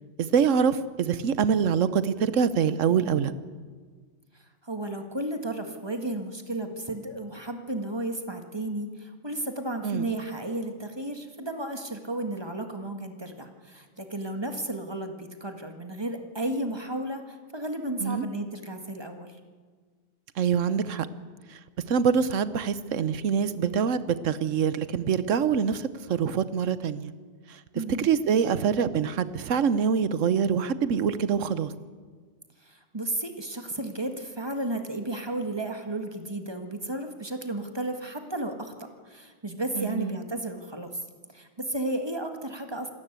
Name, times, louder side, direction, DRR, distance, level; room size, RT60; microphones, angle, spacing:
voice 1, 0.2-3.3 9.8-10.1 18.0-18.2 20.4-21.1 21.5-21.6 21.9-27.1 27.5-27.6 28.0-31.7 39.7-40.2, right 7 dB, 85° right, 14 dB, 1.3 m, -25 dB
voice 2, 4.6-19.3 27.7-28.1 32.6-40.9 41.3-42.9, right 1 dB, 20° right, 6 dB, 1.8 m, -33 dB
26.5 x 13.0 x 8.2 m, 1.5 s
omnidirectional pair, 1.3 m